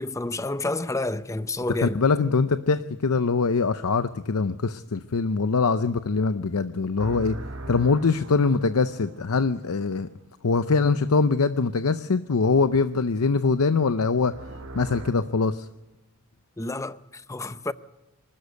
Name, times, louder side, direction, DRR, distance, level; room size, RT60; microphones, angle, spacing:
voice 1, 0.0-2.0 16.6-17.7, left 2 dB, 15° left, 0.6 m, -29 dB
voice 2, 1.8-7.4 7.7-10.1 10.4-14.3 14.7-15.7, left 4 dB, 80° left, 0.7 m, -23 dB
sound 1, 7.0-10.0 14.3-15.1, right 2 dB, 60° right, 1.5 m, -40 dB
25.0 x 13.0 x 8.1 m
head